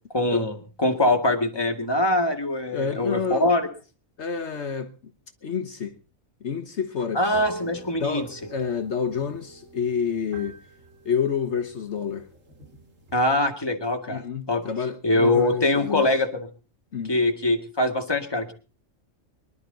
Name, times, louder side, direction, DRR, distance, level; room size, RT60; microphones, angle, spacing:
voice 1, 0.1-3.7 7.1-8.3 13.1-14.6 15.0-16.5 17.1-18.5, left 1 dB, 20° left, 2.0 m, -23 dB
voice 2, 2.7-3.5 4.2-4.9 5.4-5.9 6.4-7.4 8.0-10.6 11.0-12.3 14.1-16.1 16.9-17.1, left 6 dB, 60° left, 1.3 m, -28 dB
sound 1, 7.2-13.2, right 1 dB, 80° right, 2.5 m, -44 dB
24.0 x 11.5 x 3.9 m
omnidirectional pair, 1.3 m